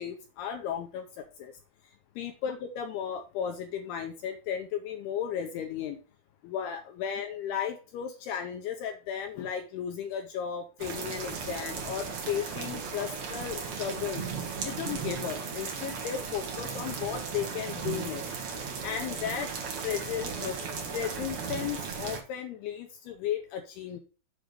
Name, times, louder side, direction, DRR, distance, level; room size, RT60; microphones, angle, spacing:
voice 1, 0.0-1.5 2.2-6.0 6.4-14.2 14.6-18.2 18.8-19.5 19.8-20.6 20.9-24.0, left 8 dB, 85° left, 4 dB, 2.3 m, -35 dB
sound 1, 10.8-22.2, right 5 dB, 55° right, 2.0 m, -36 dB
7.7 x 4.7 x 6.7 m, 0.35 s
omnidirectional pair, 5.4 m